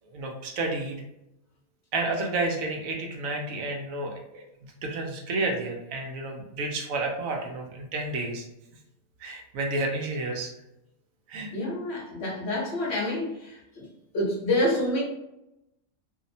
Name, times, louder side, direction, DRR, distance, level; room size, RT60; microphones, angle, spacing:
voice 1, 0.1-1.0 1.9-8.4 9.2-10.5 11.3-11.5, right 2 dB, 75° right, 1 dB, 1.0 m, -31 dB
voice 2, 11.5-13.3 13.8-13.9 14.1-15.0, left 1 dB, 55° left, -4 dB, 0.9 m, -27 dB
2.8 x 2.0 x 2.5 m, 0.87 s
omnidirectional pair, 1.4 m